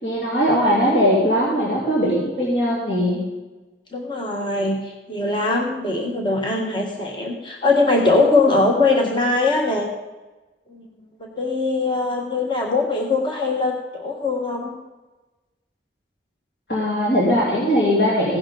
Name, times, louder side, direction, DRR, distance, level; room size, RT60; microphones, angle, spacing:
voice 1, 0.0-3.2 16.7-18.4, equal, 70° left, -6 dB, 3.0 m, -20 dB
voice 2, 3.9-9.9 10.7-10.9 11.2-14.7, left 3 dB, 25° left, 0 dB, 1.3 m, -21 dB
16.0 x 11.0 x 3.9 m, 1.1 s
head